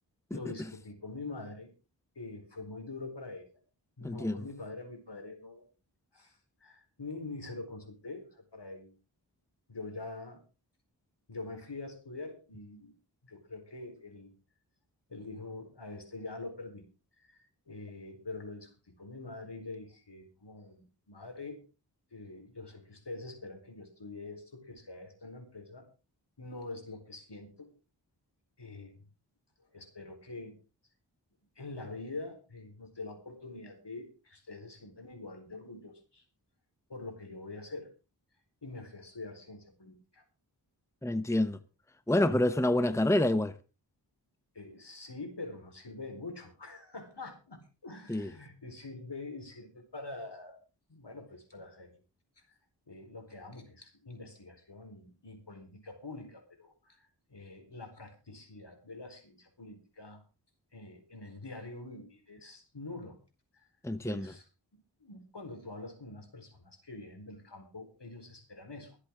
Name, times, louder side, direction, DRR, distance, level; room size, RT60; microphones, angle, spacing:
voice 1, 0.3-1.7 2.2-3.5 4.0-5.6 6.1-8.9 9.7-10.4 11.3-12.9 13.2-14.3 15.1-16.8 17.3-17.4 17.7-21.7 22.1-25.8 26.4-27.7 28.6-29.0 29.7-30.6 31.6-36.2 36.9-37.9 38.6-40.2 44.5-50.6 50.9-51.9 52.9-57.0 57.3-60.2 60.7-63.2 63.5-63.7 64.0-64.4 65.0-69.0, left 3 dB, 70° left, 4.5 m, -45 dB
voice 2, 4.0-4.4 41.0-41.6 42.1-43.5 48.1-48.3 63.8-64.3, left 1 dB, 5° left, 0.9 m, -27 dB
24.0 x 8.4 x 3.8 m
wide cardioid pair, 55°, 43 cm